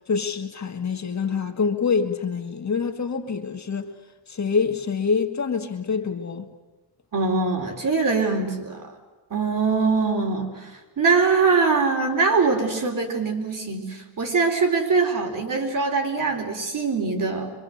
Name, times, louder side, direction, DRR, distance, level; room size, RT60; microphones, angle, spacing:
voice 1, 0.1-3.9 4.3-6.5, left 5 dB, 40° left, 1.8 m, -26 dB
voice 2, 7.1-8.9 9.3-10.7 11.0-17.5, right 4 dB, 45° right, 4.6 m, -22 dB
26.5 x 24.5 x 8.0 m
cardioid pair, 130°, 45 cm